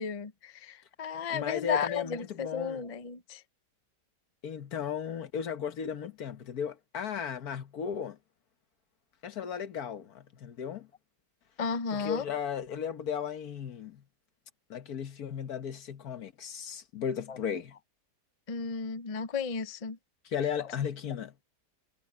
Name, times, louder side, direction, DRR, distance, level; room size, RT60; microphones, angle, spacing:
voice 1, 0.0-3.4 11.6-12.2 17.3-17.4 18.5-20.0, left 6 dB, 35° left, 0.5 m, -34 dB
voice 2, 1.3-2.8 4.4-8.2 9.2-10.9 11.9-14.0 14.7-17.7 20.2-21.3, left 7 dB, 65° left, 1.6 m, -35 dB
omnidirectional pair, 1.8 m